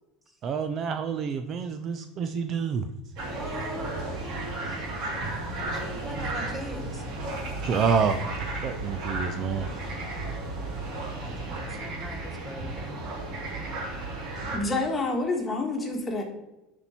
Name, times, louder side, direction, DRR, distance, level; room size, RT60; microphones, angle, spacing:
voice 1, 0.4-2.9 7.6-8.2 8.6-9.7, right 6 dB, 40° right, 8 dB, 0.5 m, -27 dB
sound 1, 3.2-14.6, right 2 dB, 55° right, 2.6 m, -34 dB
voice 2, 3.3-4.0 4.6-4.8 5.6-7.0 11.6-13.0, right 1 dB, 15° right, 4 dB, 1.3 m, -41 dB
voice 3, 14.5-16.2, left 2 dB, 20° left, 2 dB, 1.5 m, -28 dB
9.6 x 4.5 x 4.3 m, 0.96 s
supercardioid pair, 130°, 0 cm